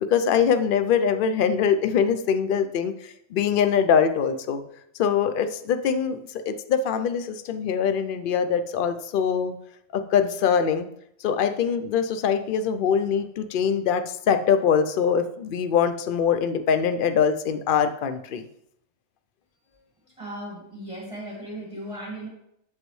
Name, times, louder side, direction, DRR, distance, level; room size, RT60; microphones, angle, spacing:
voice 1, 0.0-4.6 5.0-9.5 9.9-10.9 11.2-18.4, left 7 dB, 90° left, 9 dB, 0.4 m, -23 dB
voice 2, 20.2-22.3, right 1 dB, 20° right, -4 dB, 1.5 m, -36 dB
8.0 x 7.3 x 3.1 m, 0.76 s
omnidirectional pair, 1.5 m